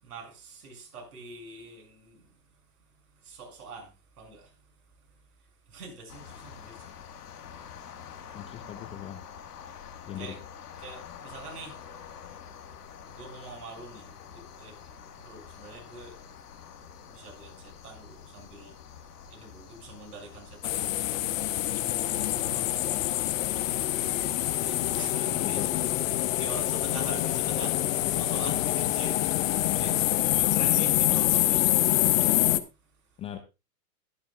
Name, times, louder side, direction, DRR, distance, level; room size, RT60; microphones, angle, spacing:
voice 1, 0.0-2.2 3.2-3.9 4.2-4.5 5.7-6.9 10.2-10.4 10.8-11.8 13.1-14.8 15.2-16.2 17.1-18.8 19.3-21.2 22.1-23.4 24.6-25.8 26.1-29.3 29.8-30.0 30.3-31.6, right 4 dB, 70° right, 6.5 m, -44 dB
sound 1, 6.1-25.1, left 8 dB, 70° left, 1.8 m, -47 dB
voice 2, 8.3-9.2 10.1-10.4 25.3-25.7 31.0-31.7 33.2-33.4, left 10 dB, 15° left, 0.5 m, -39 dB
sound 2, 20.6-32.6, left 14 dB, 55° left, 1.0 m, -26 dB
21.0 x 6.9 x 2.4 m
hypercardioid pair, 110°, 48 cm